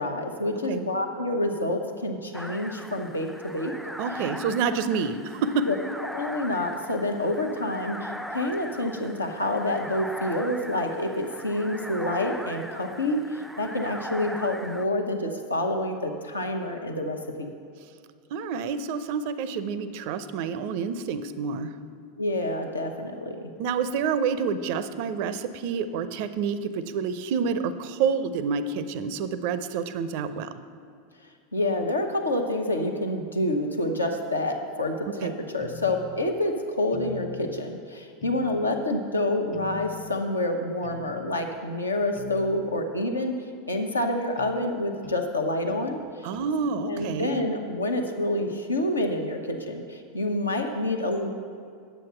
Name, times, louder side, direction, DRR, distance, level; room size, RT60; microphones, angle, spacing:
voice 1, 0.0-3.7 5.7-5.8 6.1-17.5 22.2-23.5 31.5-43.3 43.7-46.0 46.9-51.3, left 1 dB, 85° left, 3 dB, 0.9 m, -28 dB
sound 1, 2.3-14.8, equal, ahead, 0.4 m, -39 dB
voice 2, 4.0-5.7 18.3-21.7 23.6-30.5 35.1-35.3 46.2-47.4, right 6 dB, 55° right, 12 dB, 0.5 m, -28 dB
sound 2, 35.6-36.3 36.9-37.6 38.2-38.9 39.5-40.2 40.8-41.5 42.2-42.8 44.4-44.6 45.0-45.3 45.7-45.9 46.3-46.6 47.0-47.2, left 8 dB, 40° left, 0.8 m, -42 dB
9.1 x 7.5 x 5.7 m, 2.3 s
figure-of-eight pair, 85°, 0 cm